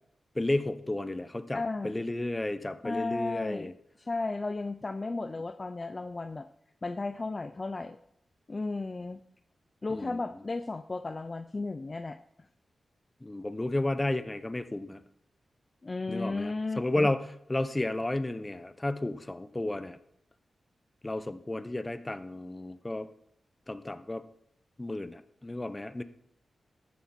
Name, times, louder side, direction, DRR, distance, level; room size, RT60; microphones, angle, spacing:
voice 1, 0.3-3.7 9.9-10.2 13.2-15.0 16.1-20.0 21.0-23.1 23.7-24.2 24.8-26.0, left 2 dB, 20° left, 12 dB, 1.0 m, -32 dB
voice 2, 1.5-2.0 2.8-3.7 4.0-6.5 6.8-8.0 8.5-9.2 9.8-12.2 15.8-17.1, left 3 dB, 40° left, 10 dB, 0.6 m, -34 dB
13.5 x 9.5 x 4.4 m, 0.74 s
cardioid pair, 55°, 0 cm